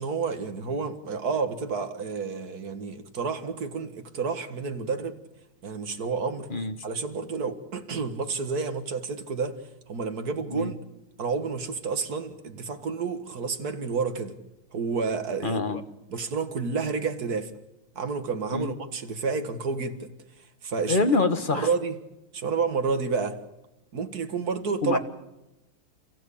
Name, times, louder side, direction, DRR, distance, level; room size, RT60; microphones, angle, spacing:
voice 1, 0.0-5.2 5.6-6.5 6.8-10.7 11.2-14.3 14.7-15.6 16.1-17.5 18.0-20.1 20.6-21.0 21.5-22.0 22.3-23.4 23.9-25.0, right 5 dB, 50° right, 2.1 m, -30 dB
voice 2, 15.4-15.8 18.5-18.7 20.9-21.7 24.8-25.0, left 3 dB, 30° left, 1.4 m, -25 dB
29.0 x 15.5 x 8.6 m
omnidirectional pair, 2.2 m